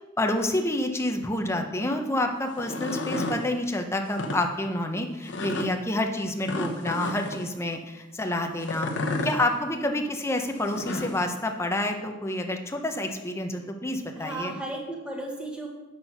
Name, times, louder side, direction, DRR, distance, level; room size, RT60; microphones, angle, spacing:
voice 1, 0.2-8.9 9.2-14.5, left 1 dB, 15° left, 4 dB, 0.8 m, -28 dB
sound 1, 2.5-3.4 4.1-4.4 5.3-5.7 6.5-7.4 8.6-9.3 10.5-11.2, left 2 dB, 70° left, 1.0 m, -31 dB
voice 2, 9.0-9.4 9.7-10.1 14.1-15.7, right 2 dB, 5° right, -1 dB, 1.4 m, -36 dB
8.0 x 6.0 x 5.9 m, 1.1 s
head